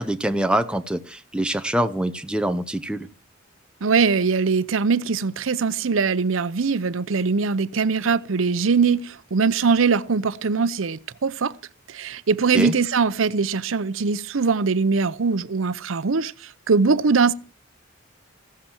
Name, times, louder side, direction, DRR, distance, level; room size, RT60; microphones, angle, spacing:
voice 1, 0.0-3.1 12.5-12.7, right 1 dB, 5° right, 0.7 m, -24 dB
voice 2, 3.8-11.5 11.9-17.3, right 5 dB, 75° right, 0.6 m, -21 dB
15.5 x 13.0 x 4.5 m
head